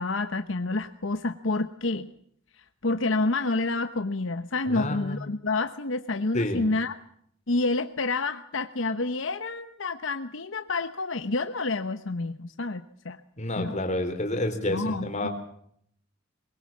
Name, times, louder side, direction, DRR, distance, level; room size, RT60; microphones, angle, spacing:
voice 1, 0.0-2.1 2.8-7.0 7.5-13.2 13.6-13.8 14.7-15.3, left 3 dB, 75° left, 9 dB, 1.0 m, -28 dB
voice 2, 4.7-5.2 6.3-6.6 13.4-15.3, left 1 dB, 35° left, 6 dB, 3.9 m, -29 dB
23.0 x 22.0 x 7.3 m, 0.67 s
head